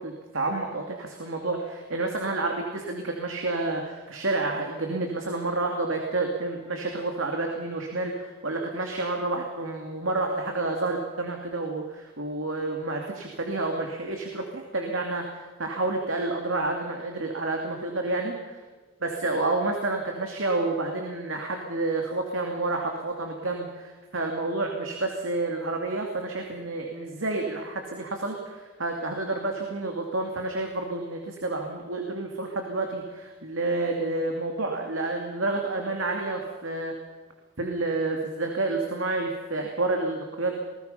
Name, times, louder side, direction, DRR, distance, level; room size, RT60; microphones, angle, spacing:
voice 1, 0.0-18.6 19.0-36.9 37.6-40.6, right 2 dB, 70° right, 2 dB, 2.7 m, -29 dB
28.0 x 21.0 x 5.8 m, 1.3 s
head